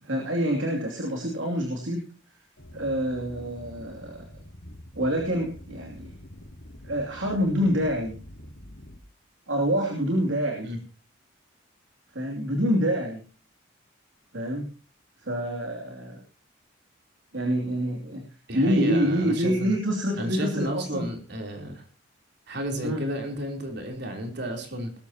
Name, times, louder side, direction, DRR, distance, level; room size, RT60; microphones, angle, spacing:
voice 1, 0.0-2.1 2.7-4.2 4.9-6.1 6.8-8.1 9.5-10.7 12.1-13.2 14.3-14.7 15.2-16.2 17.3-18.2 18.5-21.1 22.8-23.0, equal, 75° right, 1 dB, 2.8 m, -26 dB
sound 1, 2.6-9.0, left 1 dB, 85° left, 3.3 m, -46 dB
voice 2, 18.5-19.8 20.2-21.8 22.5-24.9, equal, 55° right, 3 dB, 3.7 m, -32 dB
20.0 x 13.0 x 2.9 m, 0.38 s
head